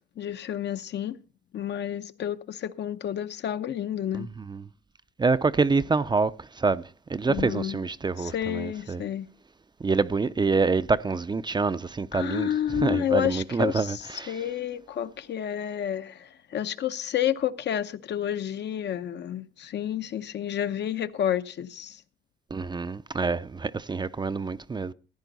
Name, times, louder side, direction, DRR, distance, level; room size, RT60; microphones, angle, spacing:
voice 1, 0.2-1.2 1.5-4.3 7.2-7.8 8.2-9.3 12.1-22.0, left 10 dB, 60° left, 0.8 m, -30 dB
voice 2, 4.1-4.6 5.2-9.0 9.8-14.4 22.5-24.9, right 4 dB, 20° right, 0.5 m, -26 dB
15.5 x 9.9 x 4.0 m
cardioid pair, 90°, 20 cm